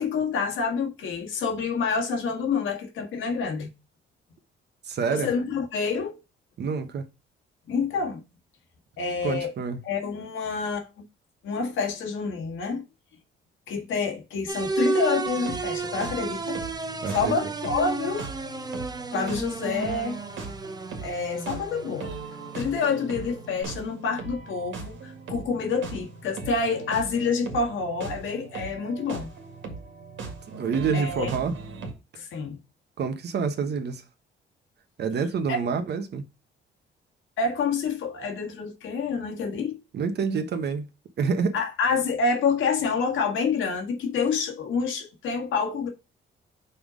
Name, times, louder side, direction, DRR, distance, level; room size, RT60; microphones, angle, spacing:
voice 1, 0.0-3.7 5.1-6.2 7.7-8.2 9.0-9.5 9.8-11.0 11.4-12.8 13.7-16.6 17.1-18.3 19.1-20.2 21.0-22.1 22.5-29.3 30.9-31.3 32.2-32.6 35.5-35.6 37.4-39.8 41.5-45.9, left 5 dB, 80° left, 1.8 m, -28 dB
voice 2, 4.8-5.3 6.6-7.1 9.2-9.8 17.0-17.4 30.5-31.6 33.0-34.0 35.0-36.2 39.9-40.9 41.2-41.6, right 5 dB, 60° right, 1.1 m, -27 dB
sound 1, 14.5-23.6, right 3 dB, 20° right, 0.8 m, -32 dB
sound 2, 15.2-31.9, right 4 dB, 75° right, 2.0 m, -39 dB
5.6 x 3.7 x 5.0 m
cardioid pair, 90°, 20 cm